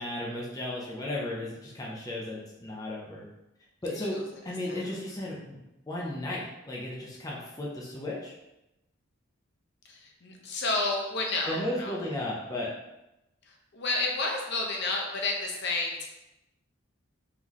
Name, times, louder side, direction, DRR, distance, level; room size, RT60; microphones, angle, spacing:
voice 1, 0.0-3.3 3.8-4.2 4.4-5.6 5.9-8.3 11.5-12.7, left 1 dB, 15° left, -4 dB, 0.6 m, -34 dB
voice 2, 9.9-11.9 13.5-16.1, left 2 dB, 55° left, 0 dB, 0.8 m, -31 dB
3.9 x 3.7 x 3.0 m, 0.93 s
head